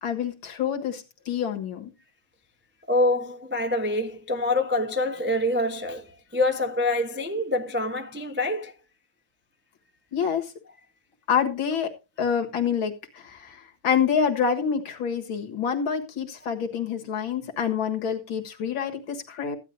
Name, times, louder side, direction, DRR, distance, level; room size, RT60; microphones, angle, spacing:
voice 1, 0.0-1.9 10.1-10.5 11.3-11.9 12.2-19.6, left 7 dB, 85° left, 2.4 m, -27 dB
voice 2, 2.9-8.7, left 1 dB, 15° right, 0.3 m, -26 dB
15.0 x 10.0 x 2.7 m
omnidirectional pair, 2.2 m